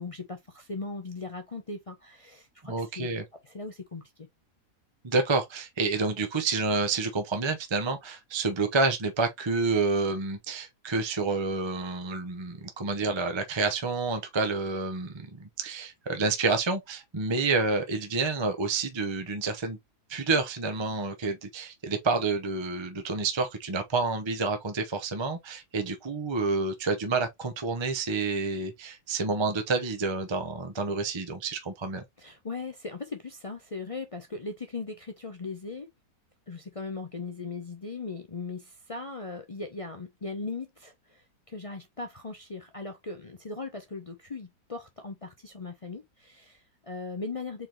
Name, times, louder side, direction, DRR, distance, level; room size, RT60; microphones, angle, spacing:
voice 1, 0.0-3.1 3.4-4.0 32.2-35.9 36.5-47.7, left 3 dB, 55° left, 0.3 m, -38 dB
voice 2, 2.6-3.2 5.0-19.8 20.1-32.0, right 3 dB, 25° right, 0.7 m, -29 dB
4.5 x 3.8 x 3.0 m
omnidirectional pair, 1.7 m